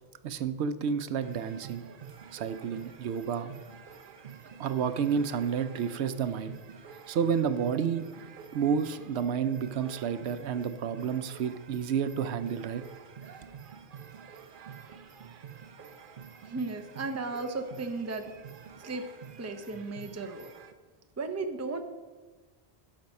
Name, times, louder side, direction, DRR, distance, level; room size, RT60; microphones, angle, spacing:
voice 1, 0.2-1.8 2.3-3.5 4.6-6.5 7.1-8.0 8.5-12.8, right 7 dB, 85° right, 12 dB, 0.9 m, -30 dB
sound 1, 1.2-20.7, right 7 dB, 55° right, 0.8 m, -48 dB
voice 2, 16.4-18.3 18.8-19.1 19.4-20.5 21.2-21.8, right 3 dB, 20° right, 6 dB, 0.6 m, -35 dB
11.5 x 6.0 x 5.3 m, 1.3 s
omnidirectional pair, 1.1 m